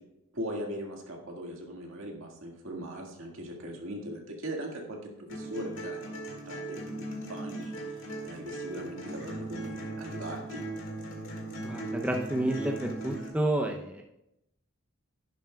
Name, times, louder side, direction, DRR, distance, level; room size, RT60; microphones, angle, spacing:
voice 1, 0.3-10.7, right 1 dB, 65° right, 0 dB, 1.8 m, -40 dB
sound 1, 5.3-13.3, right 1 dB, 60° left, 2.0 m, -38 dB
voice 2, 11.6-14.0, right 1 dB, 5° right, 1 dB, 0.5 m, -30 dB
11.0 x 10.5 x 2.3 m, 0.85 s
head